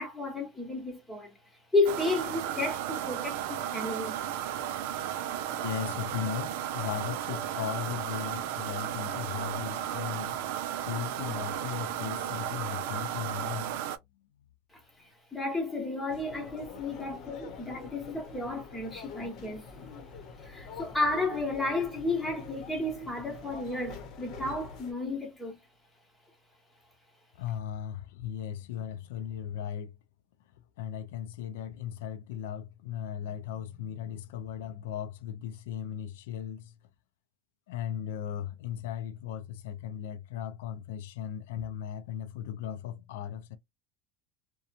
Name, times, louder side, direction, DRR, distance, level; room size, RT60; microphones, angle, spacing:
voice 1, 0.0-1.3 1.7-4.2 14.7-14.8 15.3-19.9 20.4-25.6, left 2 dB, 5° left, 1.1 m, -32 dB
sound 1, 1.9-14.0, right 11 dB, 70° right, 0.4 m, -34 dB
voice 2, 5.5-13.9 27.4-30.0 30.8-36.7 37.7-43.6, left 9 dB, 90° left, 0.4 m, -37 dB
sound 2, 16.1-24.9, left 5 dB, 45° left, 0.8 m, -46 dB
2.7 x 2.2 x 2.5 m
supercardioid pair, 150°, 0 cm